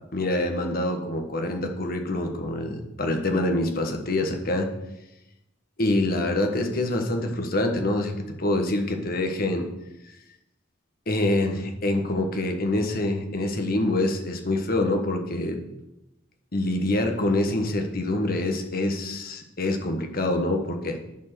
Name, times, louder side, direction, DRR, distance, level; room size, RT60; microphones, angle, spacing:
voice 1, 0.1-4.7 5.8-9.7 11.1-15.6 16.5-21.0, left 1 dB, 45° left, 4 dB, 1.3 m, -26 dB
10.5 x 4.5 x 6.1 m, 0.93 s
head